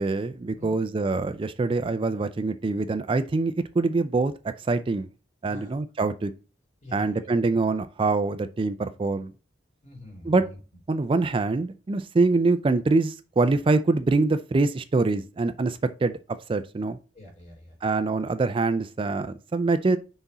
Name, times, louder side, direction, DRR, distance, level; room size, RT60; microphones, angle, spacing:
voice 1, 0.0-4.3 4.6-5.1 5.4-6.3 6.9-9.3 10.3-10.4 10.9-16.1 16.5-17.0 17.8-20.0, right 3 dB, 30° right, 0.4 m, -24 dB
voice 2, 0.5-0.9 5.5-5.8 6.8-7.3 9.8-10.6 17.1-17.8, left 1 dB, 45° left, 3.5 m, -44 dB
6.0 x 4.0 x 4.0 m
head